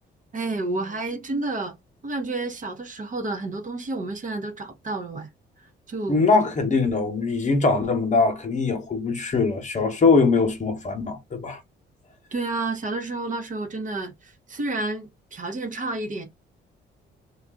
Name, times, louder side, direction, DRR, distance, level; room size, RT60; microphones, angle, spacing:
voice 1, 0.3-1.7 2.0-5.3 5.9-6.3 12.3-16.3, right 2 dB, 40° right, 0.9 m, -30 dB
voice 2, 6.1-11.6, left 4 dB, 35° left, 0.9 m, -22 dB
2.6 x 2.3 x 3.4 m
cardioid pair, 90°, 20 cm